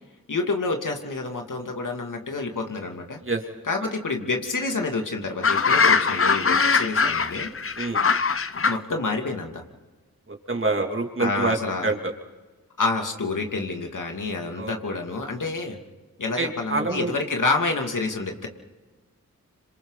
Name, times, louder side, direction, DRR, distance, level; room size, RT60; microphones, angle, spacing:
voice 1, 0.3-3.2 3.6-7.5 8.7-9.6 11.2-11.9 12.8-15.8 16.2-18.5, left 3 dB, 65° left, 3 dB, 2.8 m, -28 dB
sound 1, 5.4-8.8, left 5 dB, 40° left, 0.9 m, -21 dB
voice 2, 10.3-11.6 11.8-12.1 14.6-14.7 16.4-17.1, right 3 dB, 35° right, 2 dB, 3.0 m, -26 dB
26.5 x 26.5 x 4.1 m, 1.3 s
cardioid pair, 40°, 34 cm